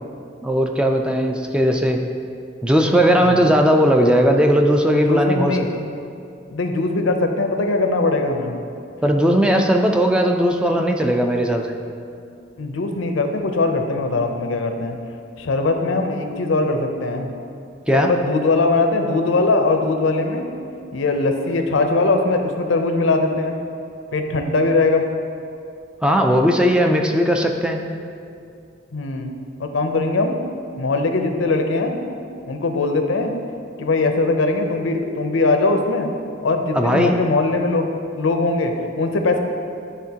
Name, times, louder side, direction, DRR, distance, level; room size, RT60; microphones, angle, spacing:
voice 1, 0.4-2.0 2.6-5.6 9.0-11.8 17.9-18.1 26.0-27.8 36.7-37.2, equal, 5° right, 2 dB, 0.3 m, -17 dB
voice 2, 4.9-5.8 6.5-8.6 12.6-15.0 15.4-17.3 17.9-20.5 20.9-23.6 24.1-25.1 28.9-29.3 29.6-30.4 30.8-32.0 32.5-33.3 33.8-36.1 36.4-37.9 38.2-39.4, left 3 dB, 80° left, 5 dB, 0.6 m, -20 dB
10.5 x 3.6 x 2.8 m, 2.5 s
head